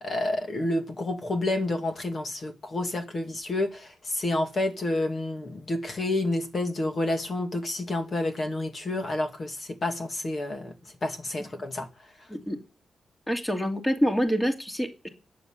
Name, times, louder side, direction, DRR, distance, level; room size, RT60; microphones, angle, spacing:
voice 1, 0.0-10.7 11.0-11.9, left 2 dB, 40° left, 2.6 m, -29 dB
voice 2, 13.3-15.1, equal, 10° left, 2.6 m, -26 dB
14.0 x 9.6 x 6.7 m
wide cardioid pair, 125°, 0 cm